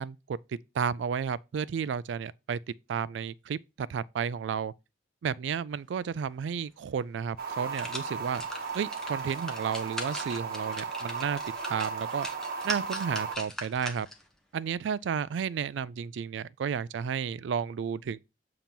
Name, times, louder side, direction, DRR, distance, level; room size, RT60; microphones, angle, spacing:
voice 1, 0.0-2.6 2.9-4.7 5.2-8.4 8.7-11.4 11.7-12.3 12.6-14.1 14.5-18.2, right 7 dB, 75° right, 0.3 m, -32 dB
sound 1, 6.8-6.9 7.4-14.3 14.7-14.8, left 1 dB, 5° left, 1.0 m, -41 dB
sound 2, 7.4-13.4, right 5 dB, 55° right, 0.9 m, -36 dB
7.3 x 2.9 x 5.2 m
head